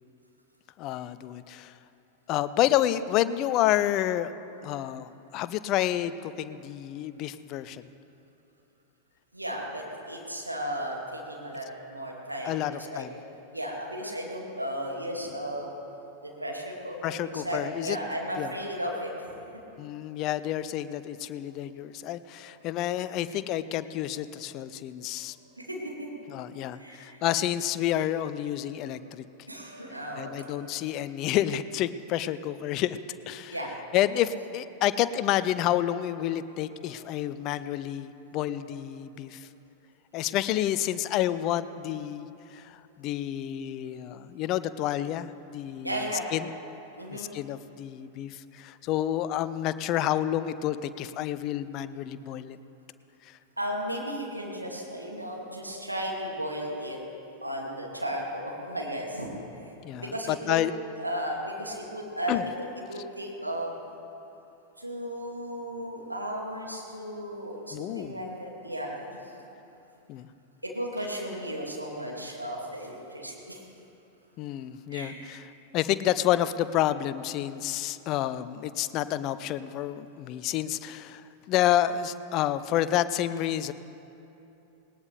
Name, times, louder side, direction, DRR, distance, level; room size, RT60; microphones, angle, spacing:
voice 1, 0.8-1.7 2.3-4.3 4.6-7.8 12.4-13.1 17.0-18.0 18.4-18.5 19.8-25.4 26.3-29.2 30.2-33.0 33.3-33.6 33.9-39.5 40.1-46.5 47.1-52.6 53.3-53.4 59.8-60.7 62.3-62.5 67.7-68.2 70.1-70.3 74.4-75.5 75.7-81.2 81.5-83.7, left 12 dB, 40° left, 14 dB, 0.6 m, -29 dB
voice 2, 9.3-13.0 13.5-15.7 16.2-19.1 25.1-25.2 25.6-26.1 26.8-27.2 29.5-30.7 33.5-33.9 38.6-38.7 45.8-46.3 47.0-47.3 53.6-57.0 57.4-59.4 59.9-60.6 61.0-63.7 64.8-69.3 70.6-73.6 74.9-75.3, equal, 85° right, -2 dB, 2.4 m, -35 dB
19.0 x 19.0 x 3.4 m, 2.9 s
figure-of-eight pair, 90°, 0 cm